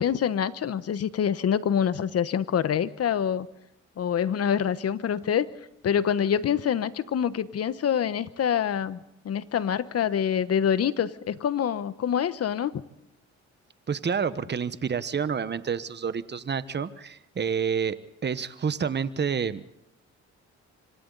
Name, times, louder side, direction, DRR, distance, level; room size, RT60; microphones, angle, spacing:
voice 1, 0.0-3.5 4.0-5.5 5.8-9.0 9.2-12.7, left 8 dB, 55° left, 14 dB, 1.1 m, -26 dB
voice 2, 13.9-18.0 18.2-19.6, right 6 dB, 35° right, 14 dB, 1.2 m, -28 dB
26.5 x 25.5 x 4.0 m, 0.85 s
cardioid pair, 90°, 30 cm